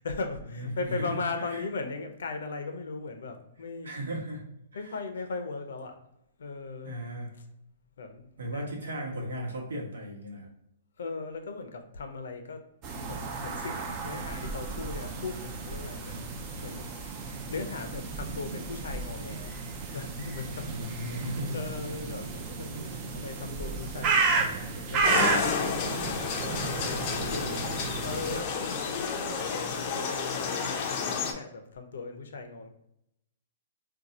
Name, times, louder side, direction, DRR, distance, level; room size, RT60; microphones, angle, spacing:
voice 1, 0.0-3.9 4.7-6.0 6.4-7.0 8.0-8.8 11.0-12.6 13.1-16.9 17.5-19.6 19.9-20.7 21.0-32.7, left 4 dB, 80° left, 6 dB, 0.6 m, -38 dB
voice 2, 0.5-1.6 3.8-4.4 4.7-4.9 6.8-7.3 8.4-10.5 20.7-21.5, equal, 90° right, -1 dB, 1.1 m, -36 dB
sound 1, 12.8-28.4, right 4 dB, 25° right, 0.4 m, -33 dB
sound 2, 25.0-31.3, left 5 dB, 35° left, 0.5 m, -31 dB
2.6 x 2.3 x 4.0 m, 0.80 s
hypercardioid pair, 155°, 0 cm